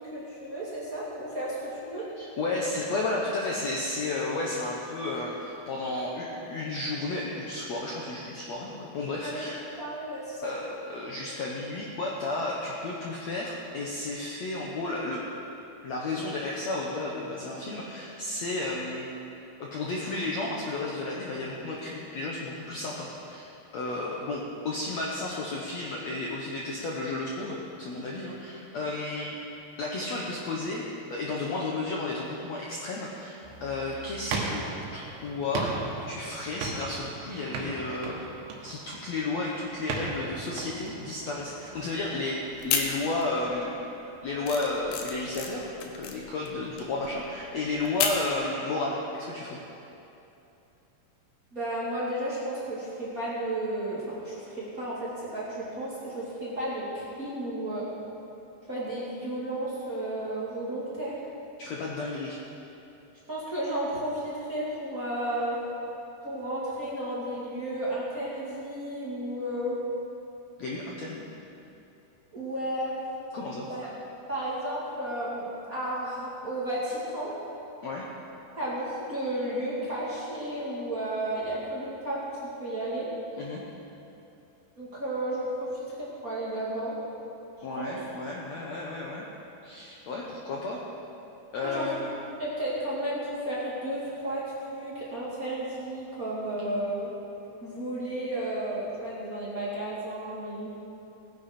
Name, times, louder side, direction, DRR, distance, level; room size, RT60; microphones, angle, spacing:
voice 1, 0.0-2.1 9.2-10.6 51.5-57.9 58.7-61.2 63.3-65.6 66.2-69.8 72.3-73.0 73.7-73.9 74.3-77.3 78.6-83.1 84.8-87.0 87.8-87.9 91.6-92.1 92.4-97.1 97.6-100.7, right 1 dB, 30° right, -8 dB, 1.8 m, -33 dB
voice 2, 2.2-9.6 10.4-15.3 15.8-19.1 19.6-29.4 29.8-34.7 34.9-35.8 36.1-38.2 38.6-43.9 44.2-49.6 61.6-62.4 70.6-71.2 73.3-73.7 77.8-78.1 83.4-83.6 87.6-89.3 89.6-90.9 91.5-92.0, left 2 dB, 85° left, -3 dB, 1.5 m, -33 dB
sound 1, 33.4-42.7, right 3 dB, 85° right, 3.5 m, -38 dB
sound 2, 42.5-43.5 43.8-48.3, left 7 dB, 70° left, 2.2 m, -32 dB
19.0 x 10.0 x 4.4 m, 2.9 s
omnidirectional pair, 4.8 m